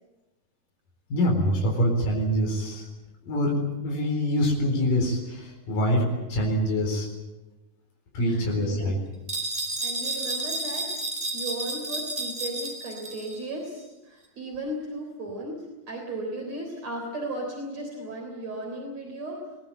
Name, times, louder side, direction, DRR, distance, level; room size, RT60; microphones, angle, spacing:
voice 1, 1.1-2.9 3.3-7.1 8.1-9.0, equal, 85° left, 1 dB, 5.8 m, -25 dB
voice 2, 8.2-9.0 9.8-10.9 11.3-19.4, right 1 dB, 50° right, 0 dB, 4.8 m, -36 dB
sound 1, 9.3-13.4, right 2 dB, 15° right, 3.4 m, -31 dB
22.5 x 19.0 x 8.9 m, 1.1 s
omnidirectional pair, 3.8 m